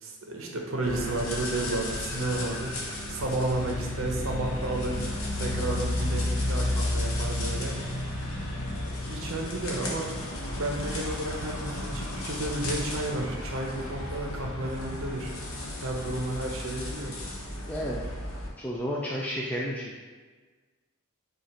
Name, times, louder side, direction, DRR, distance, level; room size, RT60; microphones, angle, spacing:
voice 1, 0.0-5.0 5.4-7.7 9.0-10.1 10.5-15.3 15.8-17.2, right 2 dB, 75° right, 1 dB, 0.8 m, -32 dB
sound 1, 0.8-18.5, left 1 dB, 85° left, 1.0 m, -33 dB
voice 2, 17.7-18.0 18.6-20.0, equal, 5° left, -4 dB, 0.3 m, -32 dB
5.0 x 2.4 x 4.2 m, 1.4 s
head